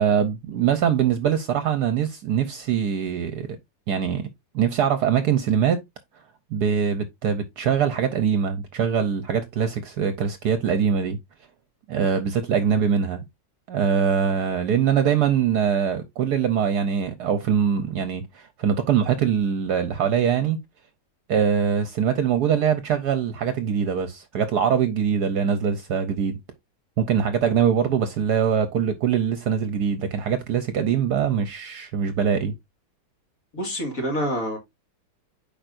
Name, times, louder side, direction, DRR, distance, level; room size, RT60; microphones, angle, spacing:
voice 1, 0.0-3.5 3.9-4.2 4.5-5.8 6.5-11.2 11.9-13.2 13.7-20.6 21.3-26.4 27.0-32.5, right 7 dB, 65° right, 1.3 m, -23 dB
voice 2, 33.5-34.6, equal, 45° left, 2.4 m, -27 dB
8.9 x 5.1 x 2.5 m
omnidirectional pair, 2.0 m